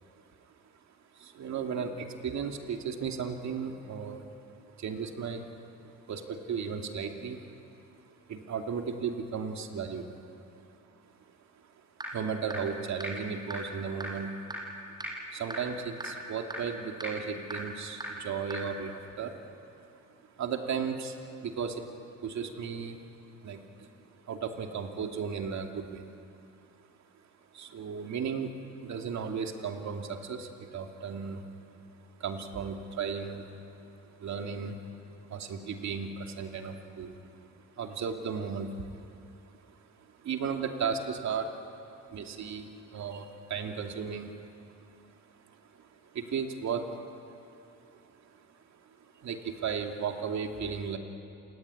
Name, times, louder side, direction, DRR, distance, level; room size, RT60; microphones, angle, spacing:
voice 1, 1.1-5.5 6.1-7.6 8.3-10.1 12.1-14.4 15.3-19.4 20.4-21.9 22.2-23.0 23.4-23.9 24.3-26.1 27.5-31.4 32.2-33.5 34.0-34.9 35.3-37.2 37.8-41.7 42.0-44.9 45.3-51.0, right 6 dB, 65° right, 3 dB, 2.7 m, -36 dB
sound 1, 12.0-12.1 12.5-12.6 13.0-13.1 13.5-13.6 14.0-14.1 14.5-14.6 15.0-15.1 15.5-15.6 16.0-16.1 16.5-16.6 17.0-17.1 17.5-17.6 18.0-18.1 18.5-18.6, right 1 dB, 15° right, 7.3 m, -36 dB
28.0 x 19.5 x 9.8 m, 2.7 s
cardioid pair, 90°, 30 cm